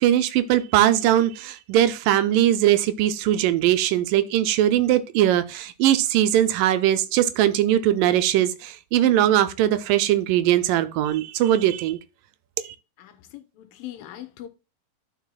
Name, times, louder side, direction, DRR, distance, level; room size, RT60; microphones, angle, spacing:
voice 1, 0.0-12.0 12.6-12.8, right 12 dB, 80° right, 2.2 m, -20 dB
voice 2, 13.0-14.5, left 13 dB, 90° left, 2.6 m, -40 dB
12.5 x 4.7 x 2.2 m
omnidirectional pair, 3.9 m